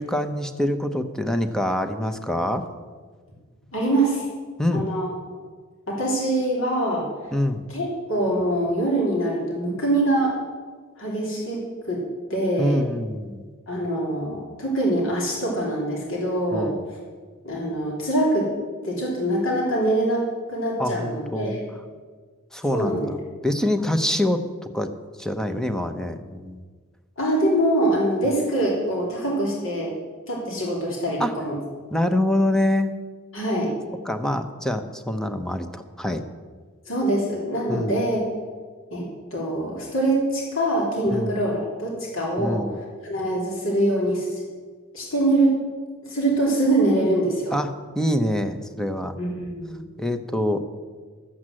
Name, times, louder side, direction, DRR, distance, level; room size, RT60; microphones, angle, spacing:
voice 1, 0.0-2.7 4.6-4.9 7.3-7.6 12.6-13.5 16.5-16.9 20.8-21.6 22.5-24.4 24.7-24.9 25.2-26.6 31.2-31.4 31.9-32.9 34.0-36.2 37.7-38.0 41.1-41.4 42.4-42.8 47.5-49.1 50.0-50.6, left 1 dB, 5° left, 8 dB, 0.7 m, -25 dB
voice 2, 3.7-4.2 4.7-5.1 5.9-7.1 7.7-10.4 11.0-12.0 12.3-12.8 13.7-16.7 17.4-18.5 18.8-21.6 22.7-23.1 27.2-29.9 30.3-31.6 33.3-33.7 36.9-38.2 38.9-44.4 44.9-45.6 46.0-47.5 49.2-49.8, right 1 dB, 65° left, -3 dB, 3.1 m, -24 dB
12.5 x 8.0 x 7.6 m, 1.5 s
head